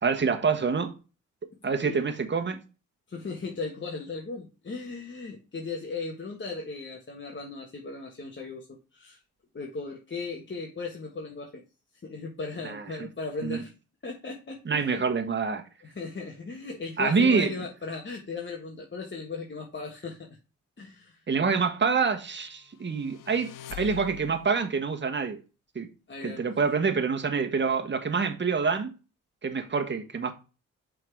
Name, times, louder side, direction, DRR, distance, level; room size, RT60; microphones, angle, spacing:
voice 1, 0.0-0.9 1.6-2.6 12.6-12.9 13.4-13.6 14.6-15.6 17.0-17.5 21.3-25.4 25.7-25.9 26.2-28.9 29.4-30.3, right 5 dB, 35° right, 1.4 m, -26 dB
voice 2, 3.1-9.2 9.5-11.6 12.0-13.7 14.0-15.0 15.8-20.4 20.8-21.2 26.1-26.5, left 4 dB, 35° left, 1.4 m, -37 dB
sound 1, 22.9-24.6, left 10 dB, 80° left, 0.7 m, -42 dB
6.0 x 3.9 x 4.6 m
cardioid pair, 60°, 32 cm